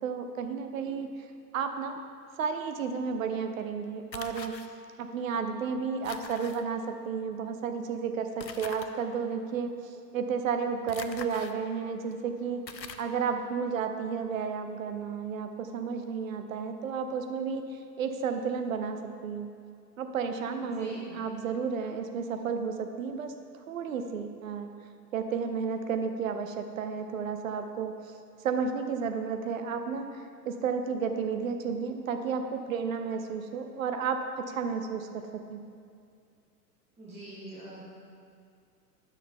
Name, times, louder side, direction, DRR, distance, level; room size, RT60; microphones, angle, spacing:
voice 1, 0.0-1.1 1.5-2.0 2.4-4.6 5.0-12.6 13.0-19.5 20.0-23.3 23.7-24.7 25.1-27.9 28.4-35.6, right 6 dB, 55° right, 6 dB, 0.8 m, -32 dB
sound 1, 4.1-4.7 6.0-6.6 8.4-8.9 10.9-11.5 12.1-12.2 12.7-13.1, left 6 dB, 85° left, 0.6 m, -42 dB
voice 2, 20.6-21.2 37.0-37.8, right 1 dB, 15° right, -9 dB, 1.7 m, -43 dB
10.0 x 6.3 x 3.7 m, 2.3 s
figure-of-eight pair, 105°, 50 cm